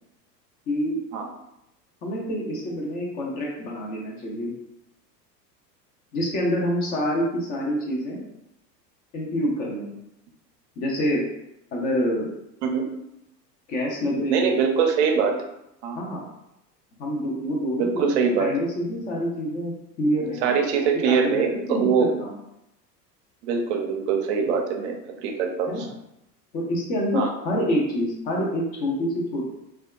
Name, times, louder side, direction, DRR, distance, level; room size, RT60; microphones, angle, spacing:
voice 1, 0.7-1.0 2.0-4.5 6.1-8.2 9.1-9.9 10.8-11.2 11.7-12.3 13.7-14.6 16.0-16.2 17.0-22.4 25.7-25.9 26.5-29.5, equal, 20° left, -2 dB, 0.4 m, -27 dB
voice 2, 14.3-15.3 15.8-16.0 17.8-18.5 20.4-22.1 23.4-24.9 25.2-25.9 27.1-27.3, right 6 dB, 45° right, 3 dB, 0.5 m, -23 dB
2.7 x 2.2 x 2.3 m, 0.84 s
figure-of-eight pair, 80°, 50 cm